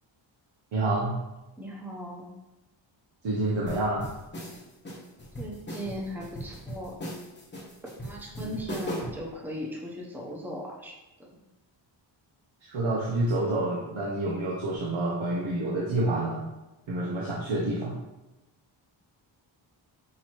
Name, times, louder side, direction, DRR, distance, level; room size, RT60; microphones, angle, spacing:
voice 1, 0.7-1.2 3.2-4.1 8.4-8.5 12.6-16.4 16.9-17.9, right 2 dB, 80° right, -4 dB, 1.0 m, -28 dB
voice 2, 1.6-2.3 5.4-7.0 8.0-10.9 11.2-11.3, equal, 5° right, -3 dB, 0.8 m, -38 dB
sound 1, 3.7-9.3, equal, 25° left, 0.9 m, -38 dB
6.2 x 2.7 x 3.0 m, 1.0 s
wide cardioid pair, 105°, 46 cm